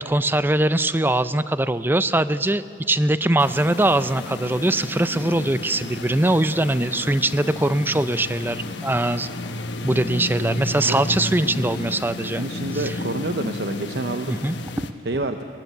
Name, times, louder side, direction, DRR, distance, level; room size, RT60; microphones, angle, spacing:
voice 1, 0.0-9.3 9.8-12.4 12.8-12.9 14.3-14.9 15.2-15.3, right 1 dB, 10° right, 14 dB, 0.5 m, -22 dB
sound 1, 3.4-14.9, left 2 dB, 85° left, 1.3 m, -32 dB
voice 2, 12.2-14.4 15.0-15.4, right 2 dB, 65° right, 7 dB, 0.8 m, -28 dB
23.0 x 20.5 x 7.9 m, 2.5 s
head